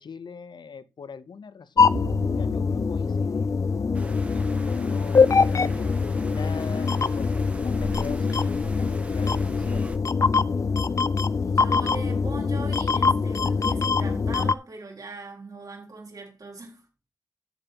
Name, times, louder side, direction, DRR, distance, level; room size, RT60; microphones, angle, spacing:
voice 1, 0.0-3.5 3.8-9.8, left 6 dB, 80° left, 0.8 m, -42 dB
sound 1, 1.8-14.6, left 5 dB, 45° left, 0.4 m, -23 dB
Bowed string instrument, 1.9-5.4, right 2 dB, 75° right, 1.6 m, -42 dB
sound 2, 3.9-10.0, right 1 dB, 15° right, 1.2 m, -41 dB
voice 2, 11.4-16.8, right 3 dB, 55° right, 3.9 m, -40 dB
14.0 x 7.0 x 2.9 m
wide cardioid pair, 125°, 8 cm